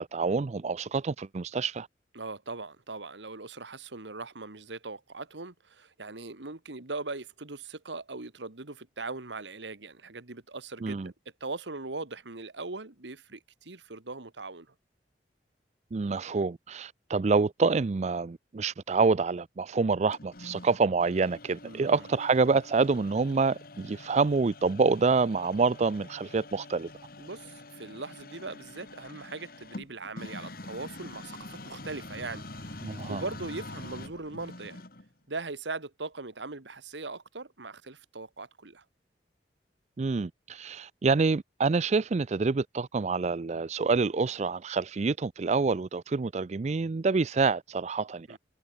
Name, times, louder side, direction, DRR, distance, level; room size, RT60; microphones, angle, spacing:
voice 1, 0.0-1.9 10.8-11.1 15.9-26.9 32.8-33.2 40.0-48.4, right 4 dB, 40° right, 0.4 m, -27 dB
voice 2, 2.2-11.1 11.4-14.7 21.6-22.1 27.2-34.8 35.3-38.8 48.3-48.4, right 3 dB, 90° right, 1.9 m, -40 dB
sound 1, 20.1-35.1, left 2 dB, 55° left, 3.0 m, -45 dB
head